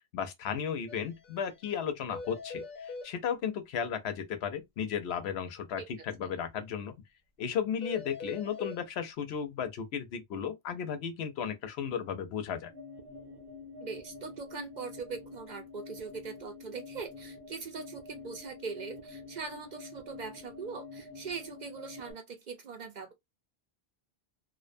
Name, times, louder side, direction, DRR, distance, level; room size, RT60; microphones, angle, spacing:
voice 1, 0.1-6.9 7.4-12.7, left 7 dB, 85° left, 0.9 m, -34 dB
sound 1, 0.9-1.0 1.2-1.4 1.6-1.7 2.1-3.1 7.8-8.8, left 3 dB, 50° left, 0.7 m, -42 dB
sound 2, 12.7-22.1, left 3 dB, 75° right, 1.0 m, -48 dB
voice 2, 13.8-23.1, right 5 dB, 55° right, 0.6 m, -41 dB
2.5 x 2.1 x 2.5 m
omnidirectional pair, 1.0 m